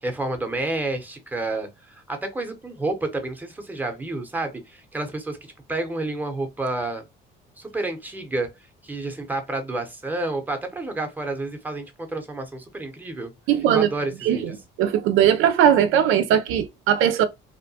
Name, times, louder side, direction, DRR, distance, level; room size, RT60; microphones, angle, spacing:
voice 1, 0.0-5.4 5.7-7.0 7.6-8.5 8.8-13.3 13.7-14.5, right 2 dB, 10° right, 0.7 m, -30 dB
voice 2, 13.5-13.9 14.2-14.5 14.8-17.3, right 9 dB, 80° right, 0.4 m, -19 dB
2.8 x 2.1 x 2.7 m
cardioid pair, 105°, 21 cm